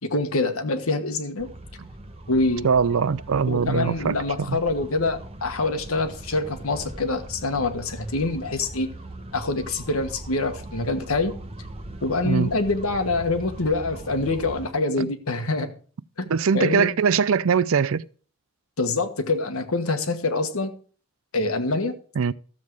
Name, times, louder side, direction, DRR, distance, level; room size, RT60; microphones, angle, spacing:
voice 1, 0.0-1.5 2.3-2.7 3.5-8.9 9.3-11.3 12.0-15.7 16.2-16.9 18.8-20.7 21.3-21.9, left 3 dB, 80° left, 1.4 m, -25 dB
sound 1, 1.4-14.7, right 1 dB, 25° right, 0.9 m, -40 dB
voice 2, 2.6-4.2 4.5-4.6 12.2-12.5 15.0-15.1 16.3-18.0 22.2-22.3, right 6 dB, 70° right, 0.5 m, -21 dB
13.5 x 7.5 x 4.7 m
head